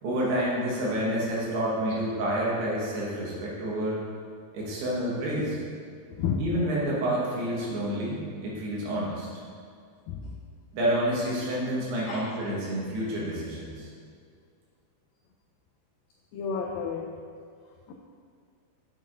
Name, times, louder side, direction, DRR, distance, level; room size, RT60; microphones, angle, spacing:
voice 1, 0.0-4.0 4.5-5.6 6.4-9.3 10.7-13.9, right 1 dB, 85° right, -5 dB, 3.5 m, -29 dB
voice 2, 16.3-17.1 17.9-18.0, left 6 dB, 90° left, 0 dB, 2.0 m, -30 dB
9.2 x 6.4 x 2.6 m, 2.2 s
omnidirectional pair, 4.5 m